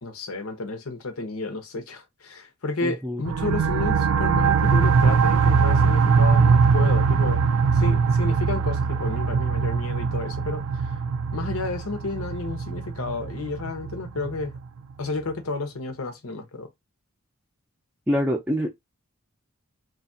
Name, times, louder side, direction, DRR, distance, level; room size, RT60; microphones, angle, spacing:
voice 1, 0.0-7.5 7.7-10.9 11.3-14.5 15.0-16.7, left 3 dB, 85° left, 0.9 m, -31 dB
voice 2, 2.8-3.2 18.1-18.7, equal, 5° right, 0.5 m, -25 dB
sound 1, 3.3-14.6, right 5 dB, 75° right, 0.4 m, -21 dB
2.8 x 2.4 x 2.6 m
head